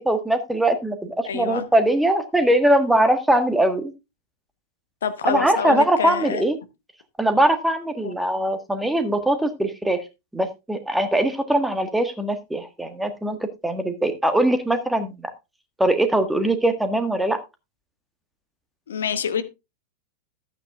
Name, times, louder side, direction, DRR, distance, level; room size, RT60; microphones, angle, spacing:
voice 1, 0.0-3.9 5.3-6.6 7.2-10.0 10.3-15.1 15.8-17.4, right 1 dB, 5° right, 8 dB, 1.5 m, -21 dB
voice 2, 1.2-1.7 5.0-6.4 8.0-8.1 18.9-19.4, left 7 dB, 65° left, 12 dB, 1.0 m, -27 dB
13.5 x 9.0 x 2.4 m, 0.24 s
figure-of-eight pair, 90°, 0 cm